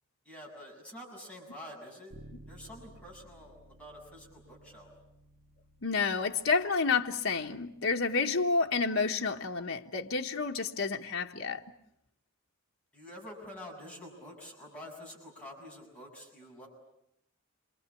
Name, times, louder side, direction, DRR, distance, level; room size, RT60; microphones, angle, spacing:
voice 1, 0.3-2.1 2.5-4.9 12.9-16.7, left 1 dB, 5° left, 7.3 m, -48 dB
Bass guitar, 2.1-11.9, right 1 dB, 70° right, 1.6 m, -58 dB
voice 2, 5.8-11.6, left 4 dB, 70° left, 1.3 m, -30 dB
27.5 x 23.5 x 8.5 m
head